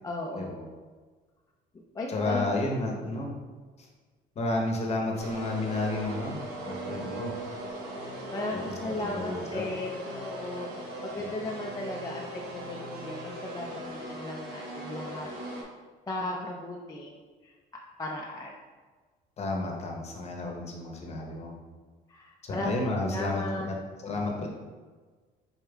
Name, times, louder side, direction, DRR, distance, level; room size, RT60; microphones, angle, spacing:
voice 1, 0.0-0.7 1.9-2.6 7.9-10.7 11.0-15.3 16.1-17.5 18.0-18.5 22.1-23.7, left 2 dB, 20° left, -2 dB, 0.5 m, -36 dB
voice 2, 2.1-3.4 3.8-3.9 4.4-7.3 8.5-8.6 9.0-9.6 11.1-11.3 19.4-21.5 22.4-23.8 24.0-24.5, left 2 dB, 40° left, 0 dB, 0.9 m, -31 dB
sound 1, 5.1-15.6, right 1 dB, 75° right, 1.2 m, -39 dB
5.3 x 4.3 x 2.3 m, 1.4 s
cardioid pair, 110°, 17 cm